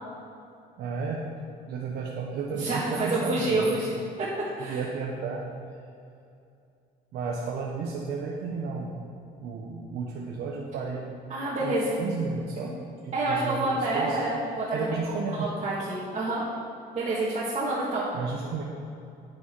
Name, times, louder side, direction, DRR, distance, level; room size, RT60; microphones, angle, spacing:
voice 1, 0.8-1.3 1.7-3.8 4.6-5.4 7.1-9.0 9.4-11.1 11.6-12.8 13.0-14.2 14.7-15.5 18.1-18.6, right 4 dB, 70° right, -2 dB, 1.3 m, -33 dB
voice 2, 2.5-4.3 4.6-4.8 11.3-12.0 12.6-12.7 13.1-15.0 15.3-16.4 16.9-18.1, right 2 dB, 40° right, -8 dB, 2.4 m, -28 dB
9.8 x 9.4 x 4.7 m, 2.6 s
cardioid pair, 110°, 17 cm